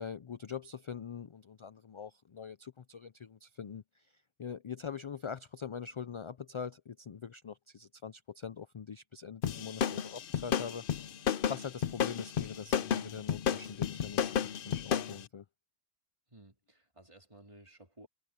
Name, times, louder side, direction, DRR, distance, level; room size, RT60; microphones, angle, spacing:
voice 1, 0.0-4.1 4.4-10.8 11.5-15.4, left 7 dB, 45° left, 0.4 m, -43 dB
sound 1, 9.4-15.2, left 8 dB, 65° left, 0.8 m, -32 dB
voice 2, 16.3-18.1, right 1 dB, 30° right, 3.3 m, -56 dB
omnidirectional pair, 1.0 m